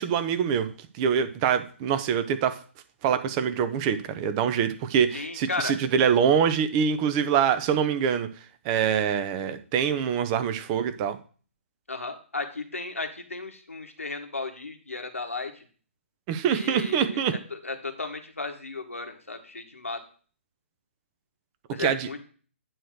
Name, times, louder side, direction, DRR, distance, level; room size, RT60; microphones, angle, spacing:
voice 1, 0.0-2.6 3.0-8.3 8.6-11.2 16.3-17.3 21.8-22.1, right 7 dB, 25° right, 10 dB, 0.7 m, -24 dB
voice 2, 5.1-5.7 11.9-15.5 16.5-20.0 21.7-22.2, left 3 dB, 85° left, 5 dB, 1.4 m, -35 dB
9.1 x 3.2 x 6.4 m, 0.41 s
figure-of-eight pair, 130°, 7 cm